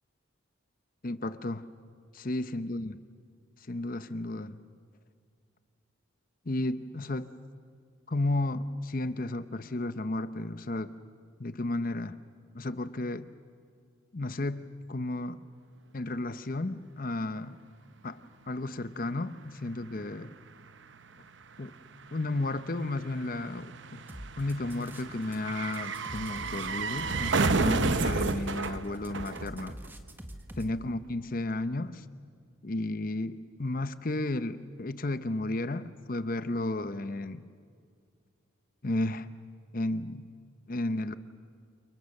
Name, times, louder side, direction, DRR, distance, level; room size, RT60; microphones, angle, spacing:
voice 1, 1.0-1.7 2.1-3.0 3.6-4.6 6.4-7.3 8.1-10.9 11.4-12.2 12.5-13.3 14.1-14.6 14.9-15.4 15.9-17.6 18.0-20.3 21.6-21.7 22.1-24.0 24.4-29.8 30.6-32.0 32.6-37.4 38.8-39.3 39.7-40.2 40.7-41.1, left 2 dB, 40° left, 12 dB, 0.8 m, -33 dB
sound 1, 19.4-19.5 19.7-30.1 30.3-30.4, right 3 dB, 60° right, 0.9 m, -32 dB
sound 2, 24.1-25.4 25.6-30.7, equal, 10° right, 1.5 m, -44 dB
29.5 x 29.0 x 6.6 m, 2.2 s
head